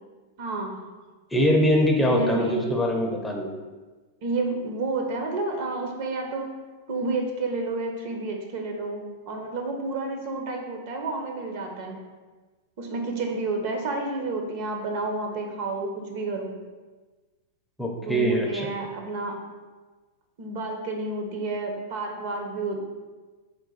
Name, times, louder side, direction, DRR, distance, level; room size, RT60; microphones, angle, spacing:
voice 1, 0.4-0.8 2.1-2.7 4.2-6.5 6.9-12.0 12.8-16.5 18.0-19.4 20.4-22.8, right 2 dB, 55° right, 2 dB, 0.8 m, -30 dB
voice 2, 1.3-3.5 17.8-18.7, equal, 5° left, 0 dB, 0.6 m, -23 dB
3.9 x 2.6 x 3.9 m, 1.3 s
hypercardioid pair, 110°, 0 cm